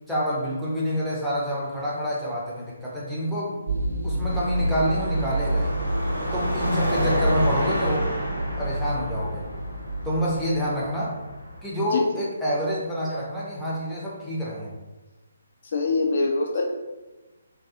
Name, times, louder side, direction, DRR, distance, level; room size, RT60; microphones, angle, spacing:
voice 1, 0.1-3.6 4.0-5.7 6.3-8.1 8.6-9.4 10.0-11.1 11.6-14.7, equal, ahead, -9 dB, 0.6 m, -27 dB
sound 1, 3.7-10.2, right 1 dB, 60° right, 0.5 m, -29 dB
Car passing by / Traffic noise roadway noise / Engine, 4.3-11.6, equal, 80° left, 0.8 m, -29 dB
voice 2, 15.7-16.6, left 3 dB, 45° left, 1 dB, 0.3 m, -24 dB
2.6 x 2.3 x 2.3 m, 1.1 s
figure-of-eight pair, 140°, 0 cm